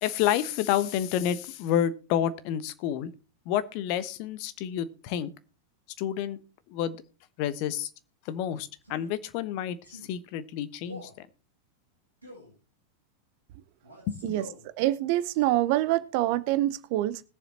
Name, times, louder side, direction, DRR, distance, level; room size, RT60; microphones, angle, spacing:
voice 1, 0.0-3.1 3.4-5.3 6.0-6.4 6.7-7.0 7.4-7.9 8.2-11.3 14.1-14.4, left 10 dB, 45° left, 1.1 m, -29 dB
Male speech man speaking, 8.8-9.2 9.8-10.1 10.8-11.2 12.2-12.5 13.8-14.7, equal, 90° left, 7.6 m, -46 dB
voice 2, 14.8-17.2, right 15 dB, 45° right, 0.8 m, -25 dB
20.5 x 7.3 x 2.9 m
figure-of-eight pair, 90°, 0 cm